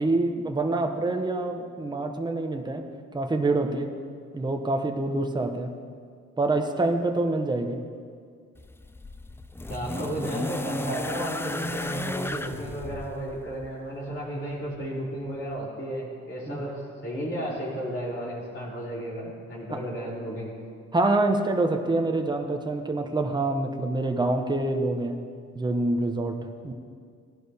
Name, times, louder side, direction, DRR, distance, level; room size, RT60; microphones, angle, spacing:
voice 1, 0.0-2.8 3.1-3.9 4.3-5.7 6.4-7.8 16.5-16.6 20.9-25.2 25.5-26.7, right 2 dB, 15° right, 4 dB, 1.0 m, -26 dB
sound 1, 8.6-13.8 14.8-14.9, left 2 dB, 10° left, 0.4 m, -35 dB
voice 2, 9.7-20.5, right 1 dB, 45° left, -7 dB, 3.4 m, -33 dB
16.5 x 11.0 x 3.5 m, 2.1 s
cardioid pair, 90°, 30 cm